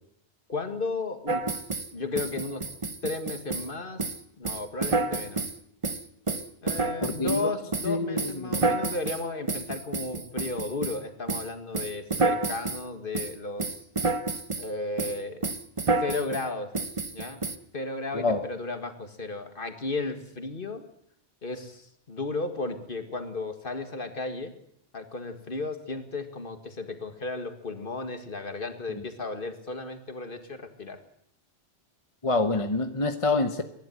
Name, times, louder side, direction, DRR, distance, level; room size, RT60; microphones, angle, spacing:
voice 1, 0.5-1.4 1.9-2.6 3.0-4.0 4.4-5.5 6.6-13.7 14.6-15.4 16.0-16.7 17.1-17.4 17.7-20.9 21.4-24.5 24.9-31.0, left 3 dB, 50° left, 2.1 m, -34 dB
sound 1, 1.3-1.9 2.2-3.7 4.0-4.2 4.4-5.6 5.8-7.5 7.7-11.0 11.3-11.5 11.7-12.8 13.1-13.3 13.6-14.7 15.0-15.2 15.4-16.4 16.7-17.6, right 3 dB, 30° right, 1.0 m, -29 dB
voice 2, 7.0-7.5 7.8-8.8 18.1-18.5 28.9-29.0 32.2-33.6, left 3 dB, 30° left, 1.0 m, -27 dB
23.5 x 11.5 x 9.5 m
omnidirectional pair, 1.1 m